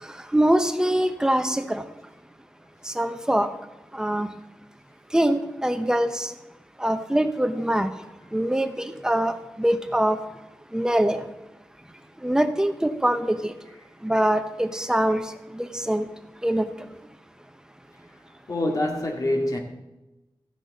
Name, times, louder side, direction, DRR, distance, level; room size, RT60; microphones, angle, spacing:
voice 1, 0.3-1.8 2.9-3.5 3.9-4.3 5.1-6.3 6.8-7.9 8.3-10.2 10.7-11.2 12.2-13.5 14.0-15.2 15.5-16.0 16.4-16.7, right 1 dB, 10° right, 8 dB, 0.9 m, -23 dB
voice 2, 18.5-19.6, left 1 dB, 45° left, 1 dB, 2.2 m, -25 dB
14.5 x 9.8 x 4.2 m, 1.0 s
wide cardioid pair, 110°, 9 cm